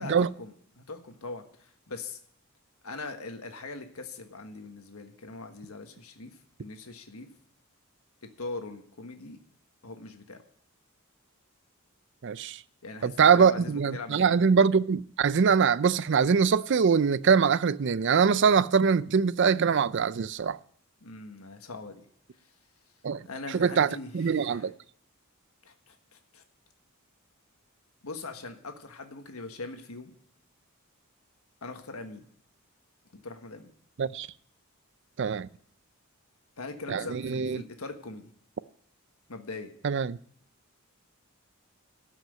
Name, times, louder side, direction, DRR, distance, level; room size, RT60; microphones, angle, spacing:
voice 1, 0.0-2.2 2.8-6.3 6.6-7.3 8.2-9.4 9.8-10.4 12.8-14.4 21.0-22.0 22.4-22.5 23.2-24.7 25.6-26.4 28.0-30.1 31.6-32.3 33.1-33.7 36.6-38.3 39.3-39.7, left 3 dB, 80° left, 1.5 m, -41 dB
voice 2, 12.2-12.6 13.0-20.6 23.0-23.2 23.5-23.9 24.1-24.7 34.0-34.3 35.2-35.5 36.9-37.6 39.8-40.2, right 6 dB, 55° right, 0.4 m, -23 dB
13.0 x 6.0 x 9.0 m
head